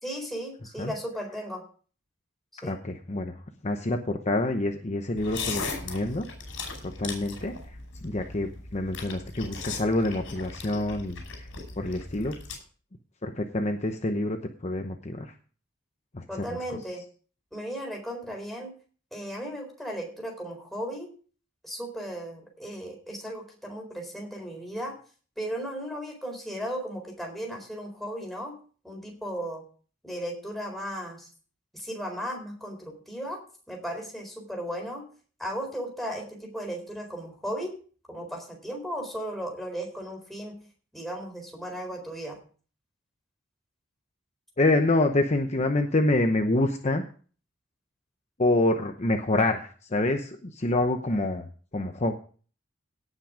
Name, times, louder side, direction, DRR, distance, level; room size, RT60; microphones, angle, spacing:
voice 1, 0.0-1.6 2.6-2.8 16.3-17.0 17.5-18.7 19.1-21.1 21.6-25.0 25.4-28.6 28.8-29.6 30.0-31.3 31.7-33.4 33.7-35.1 35.4-37.7 38.1-40.5 40.9-42.4, equal, ahead, 1 dB, 4.1 m, -36 dB
voice 2, 2.6-3.3 3.6-6.3 6.8-7.5 8.0-11.5 11.8-12.4 13.2-15.3 16.1-16.2 16.7-16.8 44.6-47.0 48.4-51.5 51.7-52.1, left 2 dB, 35° left, 5 dB, 0.9 m, -27 dB
sound 1, 5.2-12.6, left 4 dB, 70° left, 5.5 m, -38 dB
17.5 x 6.1 x 5.0 m, 0.42 s
head